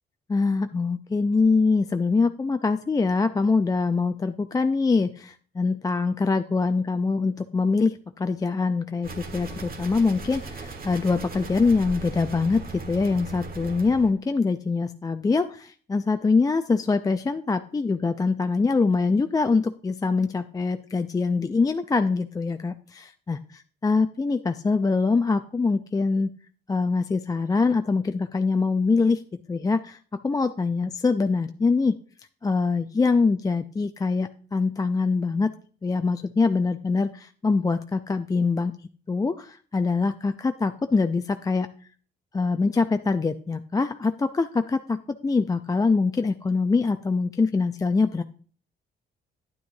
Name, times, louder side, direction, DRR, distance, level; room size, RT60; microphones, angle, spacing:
voice 1, 0.3-23.4 23.8-26.3 26.7-32.0 32.4-35.5 35.8-38.7 39.1-41.7 42.3-48.2, left 4 dB, 20° left, 8 dB, 0.4 m, -24 dB
sound 1, 9.0-14.1, right 3 dB, 45° right, 1.5 m, -38 dB
10.0 x 9.2 x 2.6 m, 0.43 s
cardioid pair, 90°, 20 cm